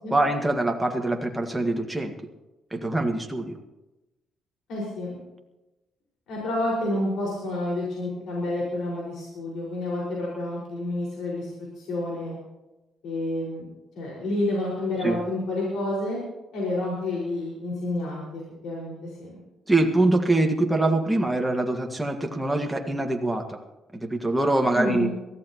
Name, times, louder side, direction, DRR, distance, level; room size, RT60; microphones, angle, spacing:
voice 1, 0.1-2.1 2.7-3.6 15.0-15.2 19.7-23.6 23.9-25.1, right 2 dB, 10° right, 2 dB, 1.9 m, -24 dB
voice 2, 4.7-5.2 6.3-11.5 11.8-12.4 13.0-13.7 14.0-16.2 16.5-18.9 19.2-19.3 24.7-25.1, left 1 dB, 80° left, -4 dB, 5.4 m, -29 dB
22.5 x 14.5 x 3.1 m, 1.0 s
cardioid pair, 105°, 0 cm